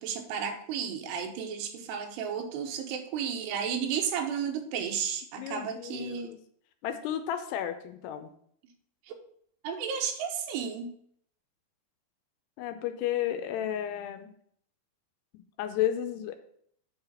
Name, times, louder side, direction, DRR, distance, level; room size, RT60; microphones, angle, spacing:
voice 1, 0.0-6.3 9.1-9.2 9.6-10.9, right 7 dB, 80° right, 4 dB, 3.0 m, -33 dB
voice 2, 5.4-6.4 6.8-8.3 12.6-14.3 15.3-16.4, left 11 dB, 85° left, 8 dB, 2.7 m, -33 dB
8.0 x 4.0 x 5.6 m, 0.65 s
omnidirectional pair, 4.8 m